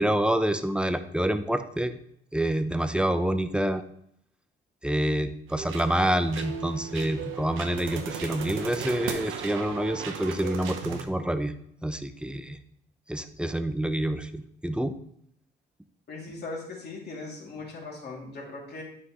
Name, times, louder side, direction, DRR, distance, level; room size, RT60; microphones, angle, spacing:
voice 1, 0.0-1.9 2.3-3.8 4.8-11.5 11.8-12.6 13.1-14.9, right 1 dB, 5° right, 9 dB, 0.6 m, -27 dB
sound 1, 5.5-11.0, right 6 dB, 90° right, 1.0 m, -36 dB
voice 2, 16.1-18.8, left 3 dB, 55° left, -2 dB, 2.8 m, -39 dB
9.4 x 6.3 x 3.1 m, 0.70 s
cardioid pair, 90°, 20 cm